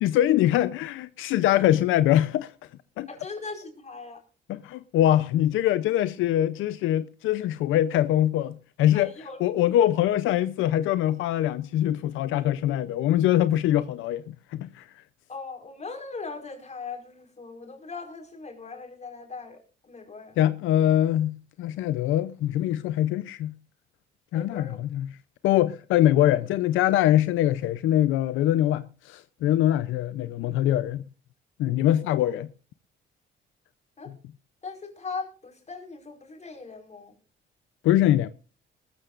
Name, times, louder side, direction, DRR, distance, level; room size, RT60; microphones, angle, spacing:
voice 1, 0.0-2.5 3.0-3.1 4.5-9.1 9.4-14.8 20.4-23.5 24.3-25.1 25.4-31.0 31.6-32.5 37.8-38.3, left 12 dB, 90° left, 0.6 m, -23 dB
voice 2, 3.1-4.2 8.9-9.4 15.3-20.4 24.3-24.8 32.2-32.3 34.0-34.1 34.6-37.2, left 4 dB, 35° left, 4.7 m, -39 dB
20.0 x 14.5 x 2.5 m
cardioid pair, 90°, 20 cm